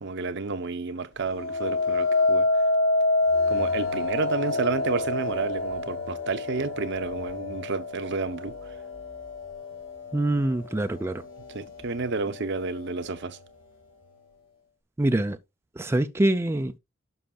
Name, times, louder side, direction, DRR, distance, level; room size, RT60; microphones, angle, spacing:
voice 1, 0.0-2.5 3.5-8.5 11.5-13.4, right 4 dB, 60° right, 0.7 m, -30 dB
sound 1, 1.3-10.4 11.0-11.4, left 2 dB, 75° left, 1.6 m, -27 dB
voice 2, 10.1-11.2 15.0-15.4 15.8-16.8, right 1 dB, 10° right, 0.4 m, -25 dB
11.5 x 5.6 x 2.3 m
head